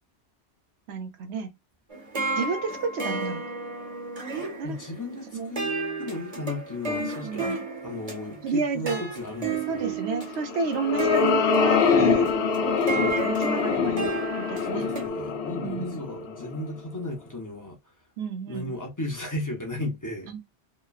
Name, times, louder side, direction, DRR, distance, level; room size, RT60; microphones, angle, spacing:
voice 1, 0.9-1.5 2.4-3.4 4.6-4.8 5.3-5.5 6.9-7.6 8.4-9.0 9.7-12.3 13.0-14.1 14.4-14.9 15.5-16.0 18.2-18.7 20.3-20.4, right 4 dB, 75° right, 0.9 m, -31 dB
sound 1, 1.9-15.1, right 3 dB, 35° right, 0.9 m, -32 dB
voice 2, 4.6-5.7 6.0-7.5 7.8-10.0 14.6-17.9 18.5-20.3, left 2 dB, 20° left, 0.6 m, -35 dB
sound 2, 10.3-16.8, left 6 dB, 70° left, 0.8 m, -24 dB
2.9 x 2.2 x 2.3 m
omnidirectional pair, 1.1 m